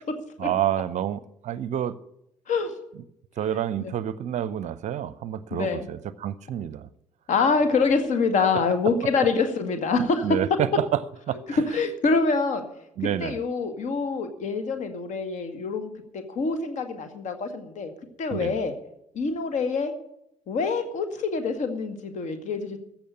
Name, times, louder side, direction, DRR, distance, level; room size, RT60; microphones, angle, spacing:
voice 1, 0.4-2.0 3.4-6.9 9.0-9.1 10.0-11.0 11.3-11.6 13.0-13.4 18.3-18.6, right 11 dB, 45° right, 0.6 m, -28 dB
voice 2, 5.5-5.9 7.3-10.3 11.7-12.6 13.2-15.9 16.3-17.9 18.2-18.7 19.2-19.9 20.5-22.8, left 4 dB, 50° left, 1.9 m, -25 dB
15.0 x 6.0 x 10.0 m
figure-of-eight pair, 50°, 16 cm